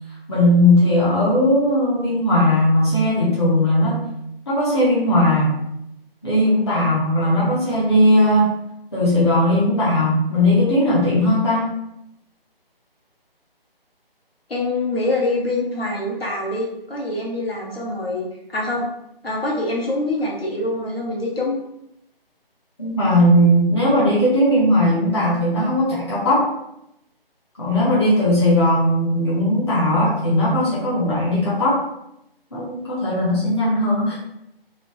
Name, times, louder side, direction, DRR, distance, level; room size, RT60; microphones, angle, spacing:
voice 1, 0.3-4.0 4.5-5.6 6.2-8.5 8.9-11.6 22.8-26.5 27.6-31.8 32.5-34.2, left 1 dB, 25° left, -8 dB, 0.6 m, -18 dB
voice 2, 14.5-18.2 18.5-18.8 19.2-21.5, left 2 dB, 75° left, -3 dB, 1.0 m, -24 dB
3.0 x 2.1 x 2.9 m, 0.82 s
figure-of-eight pair, 150°, 30 cm